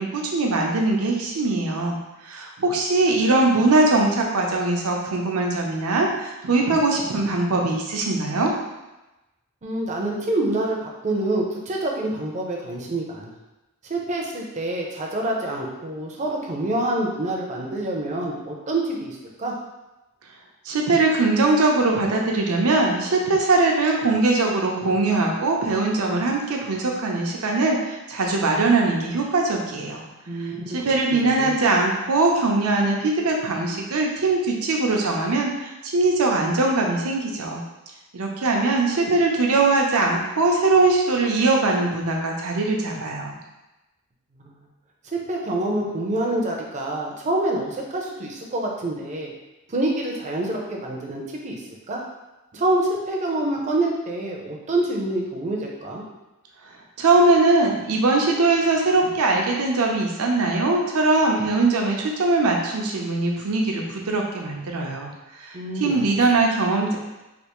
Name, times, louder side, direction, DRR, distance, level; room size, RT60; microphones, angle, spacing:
voice 1, 0.0-2.0 2.2-8.5 20.6-30.0 30.7-37.6 38.1-43.4 57.0-65.1 65.4-67.0, right 3 dB, 85° right, 0 dB, 0.6 m, -21 dB
voice 2, 9.6-13.3 13.9-19.5 30.3-31.6 44.4-44.5 45.1-49.3 49.7-51.6 51.9-52.0 52.5-56.0 65.5-66.0, right 1 dB, 35° right, -1 dB, 0.5 m, -26 dB
3.4 x 2.4 x 2.9 m, 1.0 s
head